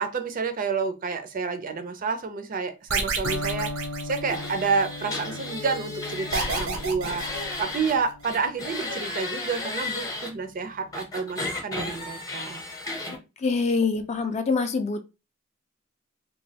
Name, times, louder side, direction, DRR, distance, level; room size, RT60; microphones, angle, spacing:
voice 1, 0.0-3.7 4.0-7.2 7.6-12.6, right 5 dB, 45° right, 8 dB, 0.4 m, -29 dB
sound 1, 2.9-4.9 6.3-8.1, right 4 dB, 85° right, 0.7 m, -30 dB
Electric guitar, 3.2-11.1, left 2 dB, 90° left, 0.5 m, -39 dB
sound 2, 4.3-7.9 8.2-10.3 10.9-13.2, left 2 dB, 20° left, 0.7 m, -34 dB
voice 2, 13.4-15.0, left 4 dB, 35° left, 7 dB, 0.4 m, -25 dB
3.0 x 2.2 x 2.7 m, 0.28 s
head